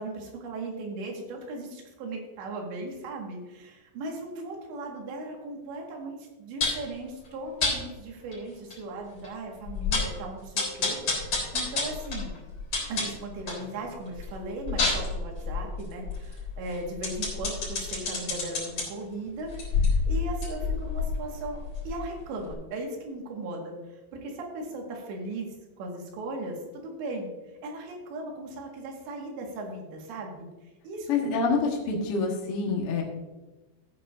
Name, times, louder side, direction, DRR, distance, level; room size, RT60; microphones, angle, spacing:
voice 1, 0.0-11.2 11.5-12.4 12.9-27.3 27.6-30.5 30.8-31.3, right 2 dB, 80° right, 0 dB, 4.0 m, -37 dB
sound 1, 6.6-6.9 7.6-7.8 8.3-8.4 8.7-8.8 9.2-9.3 9.7-10.2 10.6-13.7 14.1-18.8 19.5-22.2 22.5-22.6, left 4 dB, 35° left, 4.4 m, -29 dB
voice 2, 31.1-33.0, left 4 dB, 80° left, -1 dB, 1.3 m, -26 dB
14.5 x 9.5 x 2.6 m, 1.1 s
omnidirectional pair, 5.1 m